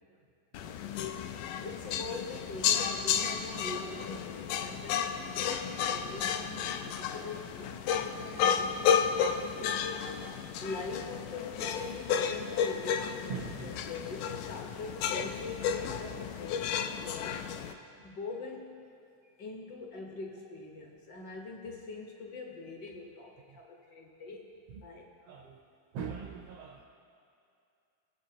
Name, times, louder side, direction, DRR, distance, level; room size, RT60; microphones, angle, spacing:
sound 1, 0.5-17.7, left 8 dB, 90° left, 2.1 m, -32 dB
voice 1, 1.6-10.1 10.6-13.3 13.6-17.5 18.0-18.7 19.4-24.5 24.8-25.1, left 3 dB, 70° left, 0 dB, 1.0 m, -43 dB
voice 2, 13.3-13.7 25.3-25.6 25.9-26.9, right 6 dB, 85° right, 2 dB, 1.3 m, -40 dB
21.5 x 7.8 x 2.8 m, 2.5 s
omnidirectional pair, 3.5 m